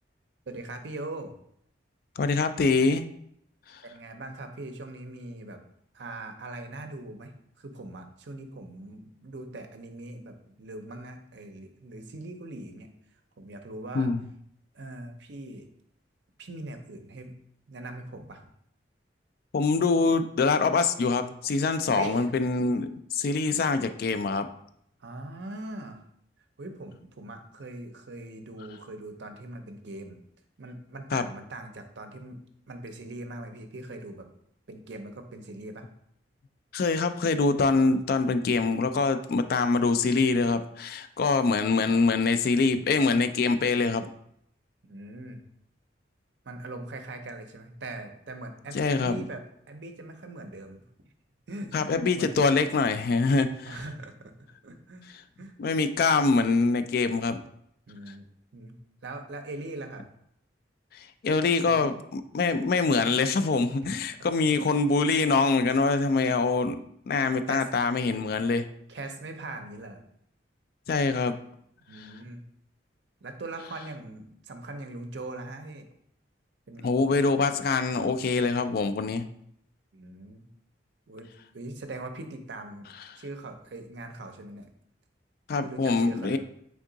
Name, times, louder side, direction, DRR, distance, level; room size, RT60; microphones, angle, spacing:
voice 1, 0.5-1.3 3.8-5.6 5.9-12.9 13.4-14.1 14.7-15.7 16.4-17.3 17.7-18.4 21.8-22.3 25.0-26.0 26.6-30.2 30.6-32.4 32.7-34.3 34.7-35.9 44.8-45.4 46.4-50.9 51.5-52.3 53.7-55.1 55.4-55.5 57.9-58.3 58.5-60.1 61.6-61.9 64.2-64.7 67.5-67.7 68.9-70.0 71.9-72.4 73.2-75.9 76.7-76.9 79.9-80.5 81.1-84.7 85.6-86.4, right 2 dB, 70° right, 6 dB, 0.6 m, -41 dB
voice 2, 2.2-3.0 13.9-14.2 19.5-24.5 31.1-31.2 36.7-44.0 48.7-49.2 51.7-53.7 55.6-57.4 60.9-66.8 67.1-68.7 70.9-71.4 71.9-72.1 76.8-79.3 85.5-86.4, left 4 dB, 55° left, 10 dB, 0.3 m, -24 dB
3.6 x 3.6 x 3.8 m, 0.71 s
head